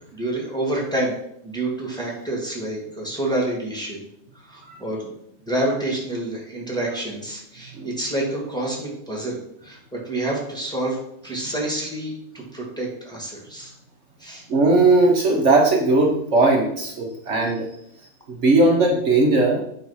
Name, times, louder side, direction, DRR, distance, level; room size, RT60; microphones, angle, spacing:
voice 1, 0.1-1.1 1.4-4.0 4.4-5.1 5.4-11.0 11.2-13.7 14.2-14.4, right 1 dB, 5° left, -3 dB, 1.6 m, -28 dB
voice 2, 14.5-17.7 18.3-19.6, right 2 dB, 55° right, 0 dB, 1.2 m, -18 dB
8.9 x 3.1 x 5.5 m, 0.74 s
omnidirectional pair, 1.5 m